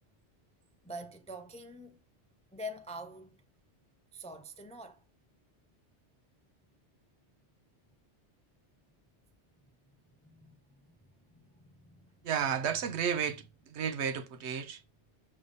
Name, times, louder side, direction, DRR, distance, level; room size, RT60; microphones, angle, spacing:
voice 1, 0.8-2.0 2.5-3.4 4.1-5.0 10.2-11.0 11.3-12.3, equal, 10° left, 0.4 m, -46 dB
voice 2, 12.2-14.8, right 7 dB, 70° right, 1.0 m, -32 dB
6.7 x 3.3 x 5.1 m
omnidirectional pair, 1.2 m